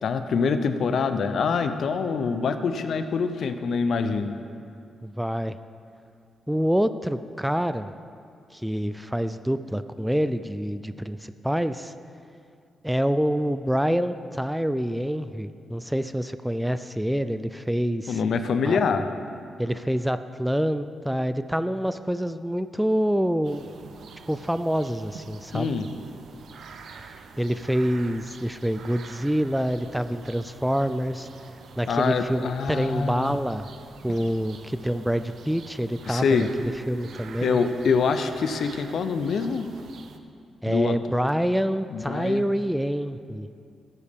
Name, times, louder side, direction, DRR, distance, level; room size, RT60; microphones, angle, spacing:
voice 1, 0.0-4.4 18.1-19.1 25.5-25.9 31.9-33.3 36.1-36.5 37.4-39.7 40.7-40.9 41.9-42.4, left 5 dB, 65° left, 9 dB, 0.7 m, -25 dB
voice 2, 5.0-5.6 6.5-7.9 8.5-11.9 12.8-18.2 18.7-18.8 19.6-23.7 24.3-25.7 27.4-31.3 31.8-33.7 34.0-37.6 40.6-43.5, equal, 5° right, 12 dB, 0.3 m, -26 dB
sound 1, 23.4-40.2, right 5 dB, 65° right, 0.7 m, -46 dB
13.0 x 9.9 x 3.6 m, 2.4 s
cardioid pair, 80°, 0 cm